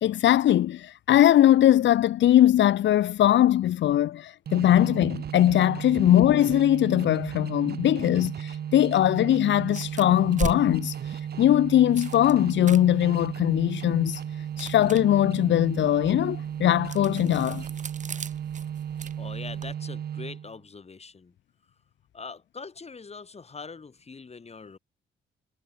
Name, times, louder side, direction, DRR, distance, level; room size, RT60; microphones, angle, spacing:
voice 1, 0.0-17.6, left 12 dB, 70° left, 1.1 m, -21 dB
sound 1, 4.5-20.6, right 9 dB, 55° right, 1.5 m, -35 dB
sound 2, 9.6-19.7, right 6 dB, 40° right, 2.7 m, -41 dB
voice 2, 19.2-21.3 22.1-24.8, left 4 dB, 30° left, 6.6 m, -42 dB
cardioid pair, 90°, 20 cm